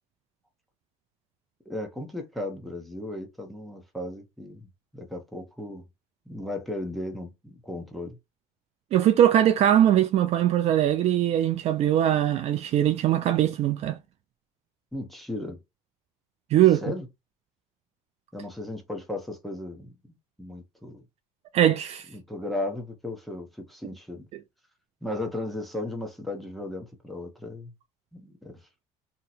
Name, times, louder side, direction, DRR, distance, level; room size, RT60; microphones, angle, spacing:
voice 1, 1.7-5.8 6.3-8.2 14.9-15.6 16.8-17.1 18.3-21.0 22.1-24.3 25.0-27.7 28.1-28.6, left 1 dB, ahead, 0.8 m, -36 dB
voice 2, 8.9-14.0 16.5-16.8 21.5-22.0, right 11 dB, 50° right, 0.4 m, -21 dB
2.8 x 2.2 x 4.0 m
cardioid pair, 120°, 14 cm